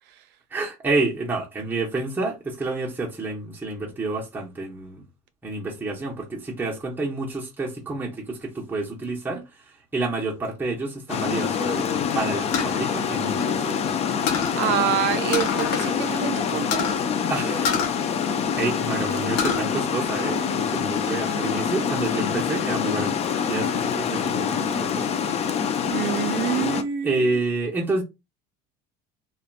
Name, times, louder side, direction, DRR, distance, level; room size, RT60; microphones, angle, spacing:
voice 1, 0.5-5.0 5.4-13.8 17.3-17.7 18.5-25.1 27.0-28.0, right 3 dB, 10° right, 0.7 m, -29 dB
Water, 11.1-26.8, left 7 dB, 30° left, 0.4 m, -25 dB
sound 1, 12.5-13.9 14.3-14.6 15.3-15.9 16.2-16.3 16.7-17.0 17.6-18.8 19.1-19.6 20.1-20.8, left 6 dB, 80° left, 0.6 m, -27 dB
voice 2, 14.5-16.9 25.9-27.4, right 10 dB, 60° right, 0.4 m, -26 dB
2.7 x 2.2 x 2.4 m
supercardioid pair, 110°, 20 cm